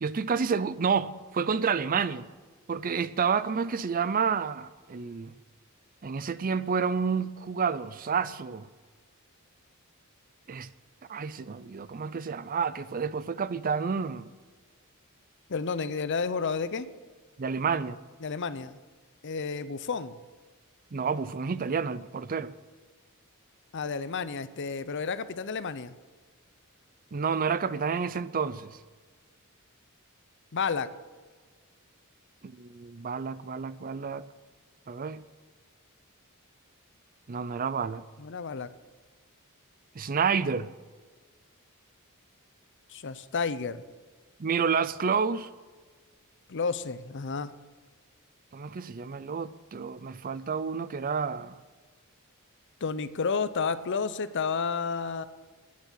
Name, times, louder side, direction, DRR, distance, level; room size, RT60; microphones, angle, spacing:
voice 1, 0.0-2.3 2.7-5.3 6.0-8.7 10.5-10.7 11.1-14.2 17.4-18.0 20.9-22.5 27.1-28.8 32.4-34.3 34.9-35.2 37.3-38.1 40.0-40.7 44.4-45.5 48.5-51.6, right 6 dB, 40° right, 0.5 m, -29 dB
voice 2, 15.5-16.9 18.2-18.8 19.2-20.2 23.7-25.9 30.5-30.9 38.2-38.7 42.9-43.8 46.5-47.5 52.8-55.2, left 5 dB, 55° left, 0.6 m, -31 dB
9.6 x 7.7 x 9.1 m
head